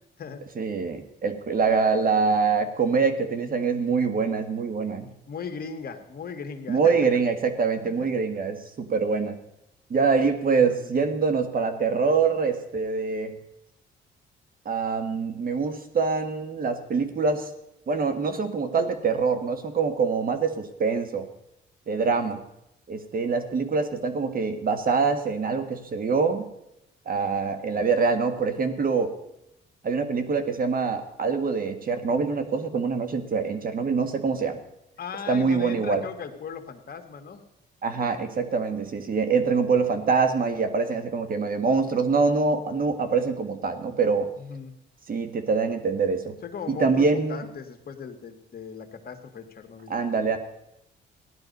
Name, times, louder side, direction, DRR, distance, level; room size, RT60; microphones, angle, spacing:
voice 1, 0.6-5.1 6.7-9.4 9.9-13.4 14.6-17.5 17.9-21.3 21.9-22.4 22.9-26.5 27.0-29.1 29.8-34.6 35.3-36.0 37.8-44.3 45.1-46.3 46.7-47.4 49.9-50.4, right 5 dB, 45° right, 9 dB, 1.6 m, -24 dB
voice 2, 5.3-6.9 7.8-8.1 10.5-11.1 35.0-37.4 44.4-44.8 46.4-50.0, left 6 dB, 50° left, 6 dB, 1.8 m, -38 dB
15.5 x 11.5 x 5.3 m, 0.84 s
cardioid pair, 90°, 20 cm